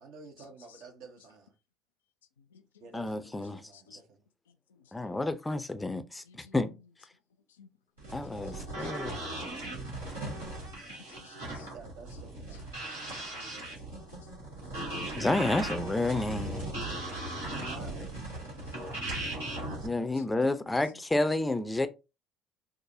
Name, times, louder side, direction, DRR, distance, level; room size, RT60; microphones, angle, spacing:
voice 1, 0.0-1.5 2.8-4.2 11.6-13.8 16.4-17.1 17.4-18.4, right 4 dB, 65° right, 0.8 m, -51 dB
voice 2, 2.9-3.6 4.9-6.7 8.1-9.2 15.2-16.6 19.8-21.9, left 2 dB, 15° left, 0.5 m, -30 dB
sound 1, 8.0-19.9, right 1 dB, 90° right, 1.4 m, -38 dB
voice 3, 11.1-11.7 12.9-13.0 13.6-13.7 13.9-14.0 14.8-14.9 19.5-20.3, left 6 dB, 80° left, 0.3 m, -57 dB
4.7 x 2.1 x 2.6 m
figure-of-eight pair, 55°, 0 cm